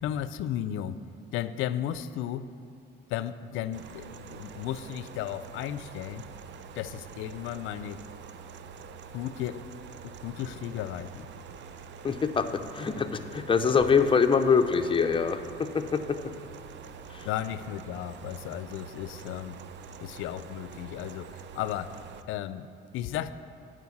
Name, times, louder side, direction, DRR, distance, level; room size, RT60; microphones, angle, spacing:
voice 1, 0.0-1.0 1.3-2.5 3.1-6.3 6.8-8.0 9.1-9.7 10.0-11.3 17.2-19.6 20.0-21.9 22.3-23.3, left 11 dB, 90° left, 14 dB, 0.4 m, -34 dB
sound 1, 3.7-22.2, right 6 dB, 65° right, 0.5 m, -46 dB
voice 2, 12.0-16.2 17.1-17.3, left 5 dB, 25° left, 7 dB, 0.6 m, -24 dB
9.4 x 5.1 x 7.2 m, 2.5 s
cardioid pair, 90°, 20 cm